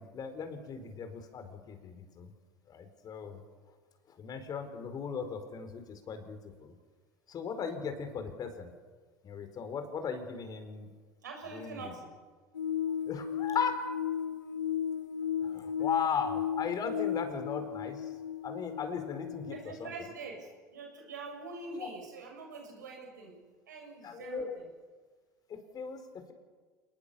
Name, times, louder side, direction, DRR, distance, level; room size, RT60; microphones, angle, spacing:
voice 1, 0.0-2.3 2.7-3.4 4.2-6.7 7.3-8.7 9.2-10.9 11.5-11.9 13.1-13.8 15.4-18.1 18.4-19.5 19.8-19.9 21.7-21.9 24.0-24.6 25.5-26.3, left 6 dB, 45° left, 8 dB, 4.4 m, -37 dB
voice 2, 11.2-12.1 19.5-23.4 23.7-24.7, right 4 dB, 85° right, 2 dB, 6.7 m, -44 dB
sound 1, 12.6-19.6, left 9 dB, 90° left, 0.7 m, -35 dB
28.5 x 19.5 x 7.1 m, 1.5 s
hypercardioid pair, 70°, 10 cm